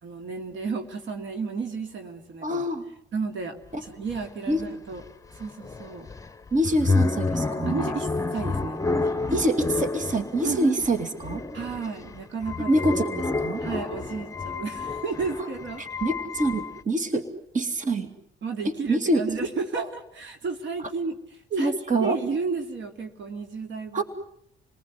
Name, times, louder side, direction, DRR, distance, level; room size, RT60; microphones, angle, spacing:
voice 1, 0.0-2.6 3.1-5.0 5.3-6.1 7.6-9.3 10.4-10.8 11.5-12.8 13.6-15.8 18.4-21.2 21.6-21.7 22.0-24.0, right 4 dB, 70° right, 6 dB, 3.1 m, -32 dB
voice 2, 2.4-2.8 3.7-3.8 4.5-4.6 6.5-7.8 9.3-11.4 12.7-13.6 15.8-17.3 17.5-18.1 18.9-19.2 19.8-19.9 21.5-22.2 23.9-24.0, right 1 dB, 40° right, 7 dB, 2.6 m, -25 dB
sound 1, 3.7-3.8 4.1-16.8, left 3 dB, 15° left, 1.1 m, -30 dB
28.5 x 19.5 x 9.6 m, 0.72 s
cardioid pair, 90°, 20 cm